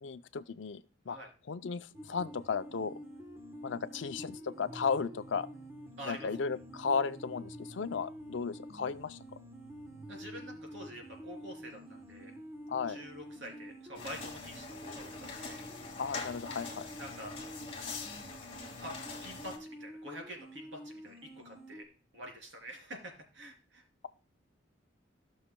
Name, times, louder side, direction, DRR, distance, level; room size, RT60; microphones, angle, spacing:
voice 1, 0.0-1.2 1.5-2.9 3.6-5.5 6.0-9.2 12.7-13.0 16.0-16.9, left 5 dB, 70° left, 0.5 m, -35 dB
sound 1, 1.9-21.8, equal, 15° right, 1.0 m, -48 dB
voice 2, 6.0-6.3 10.1-12.3 12.9-15.6 17.0-17.6 18.8-19.0 19.2-21.8 22.1-23.8, equal, 70° right, 3.2 m, -47 dB
sound 2, 13.9-19.6, left 4 dB, 30° left, 1.8 m, -43 dB
15.5 x 6.3 x 2.2 m
head